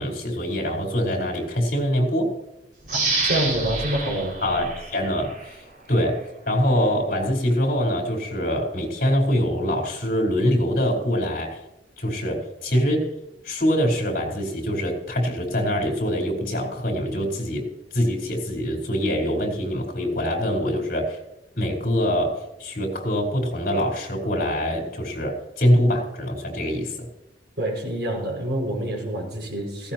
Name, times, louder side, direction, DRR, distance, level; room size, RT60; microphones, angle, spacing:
voice 1, 0.0-2.3 4.4-11.6 12.0-13.1 13.4-17.7 17.9-21.2 21.5-27.1, equal, 55° left, 1 dB, 4.5 m, -24 dB
sound 1, 2.9-5.5 6.0-6.1, right 3 dB, 50° right, 5.8 m, -28 dB
voice 2, 3.2-4.4 27.6-29.9, right 1 dB, 70° right, -1 dB, 6.0 m, -27 dB
17.5 x 16.5 x 3.0 m, 0.94 s
head